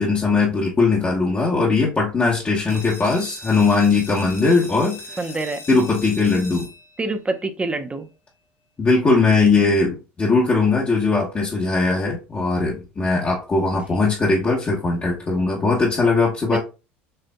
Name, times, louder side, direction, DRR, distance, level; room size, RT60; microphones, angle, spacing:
voice 1, 0.0-5.2 5.7-6.7 8.8-16.6, left 3 dB, 25° left, 1.2 m, -19 dB
sound 1, 2.7-8.1, left 2 dB, 45° left, 1.1 m, -40 dB
voice 2, 5.2-5.6 7.0-8.1 13.9-14.0 16.5-16.6, right 3 dB, 20° right, 0.8 m, -26 dB
6.7 x 2.5 x 2.3 m
supercardioid pair, 90°, 6 cm